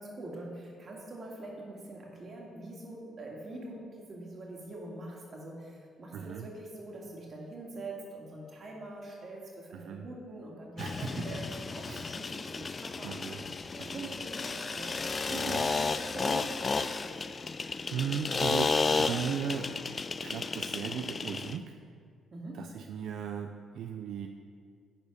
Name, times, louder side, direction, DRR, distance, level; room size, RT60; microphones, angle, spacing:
voice 1, 0.0-14.9 15.3-15.9 16.1-16.8 22.3-22.7, right 2 dB, 45° right, -2 dB, 2.0 m, -44 dB
voice 2, 6.1-6.5 9.7-10.1 10.8-11.4 11.8-12.2 13.0-13.4 13.8-14.1 15.3-15.6 17.2-17.4 17.9-19.8 20.2-21.8 22.5-24.3, right 7 dB, 75° right, 5 dB, 0.4 m, -37 dB
sound 1, 10.8-21.6, left 4 dB, 35° left, 0.3 m, -33 dB
10.5 x 4.5 x 5.2 m, 2.2 s
cardioid pair, 90°, 0 cm